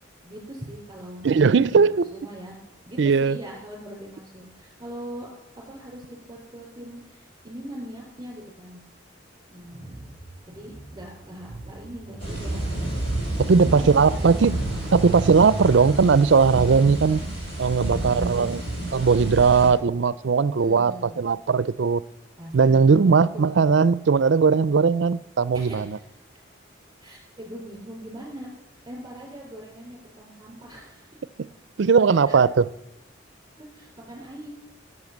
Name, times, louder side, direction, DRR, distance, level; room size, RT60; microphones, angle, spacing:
voice 1, 0.2-2.6 2.9-5.3 5.6-8.8 9.5-10.1 10.5-12.6 13.6-14.6 17.8-18.6 20.6-21.1 22.4-23.6 25.5-26.0 27.0-28.5 28.8-31.2 32.2-32.4 33.6-34.5, right 1 dB, 20° right, 4.0 m, -41 dB
voice 2, 1.2-2.1 3.0-3.4 13.5-14.6 14.9-17.2 17.6-18.6 18.9-22.0 22.5-26.0 31.4-31.5 31.8-32.5, right 5 dB, 65° right, 0.4 m, -19 dB
sound 1, 9.7-15.9, right 2 dB, 5° left, 4.3 m, -37 dB
sound 2, 12.2-19.7, right 1 dB, 30° left, 6.9 m, -30 dB
16.0 x 8.4 x 7.3 m
head